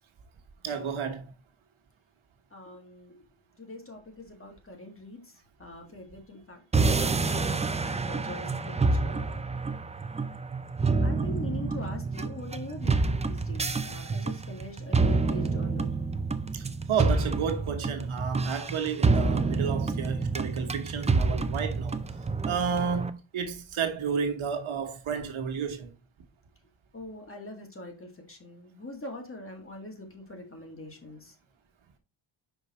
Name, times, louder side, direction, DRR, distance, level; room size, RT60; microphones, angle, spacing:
voice 1, 0.6-1.3 16.5-22.0 22.5-25.9, right 6 dB, 70° right, 1.3 m, -31 dB
voice 2, 2.5-3.3 3.6-9.4 11.0-15.9 26.9-31.4, left 1 dB, 25° left, 1.9 m, -43 dB
sound 1, 6.7-23.1, right 3 dB, 15° right, 0.3 m, -28 dB
5.4 x 5.1 x 4.1 m
wide cardioid pair, 115°, 50 cm